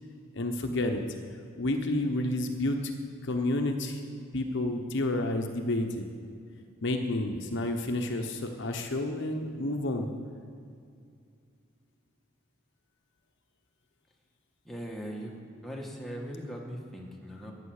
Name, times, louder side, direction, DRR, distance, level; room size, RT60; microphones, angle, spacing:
voice 1, 0.3-1.0 1.6-2.8 3.2-4.0 4.3-6.1 6.8-10.1, left 1 dB, 60° left, 5 dB, 1.1 m, -30 dB
voice 2, 14.7-15.3 15.6-17.5, equal, ahead, -1 dB, 1.8 m, -39 dB
14.5 x 9.0 x 6.6 m, 2.3 s
head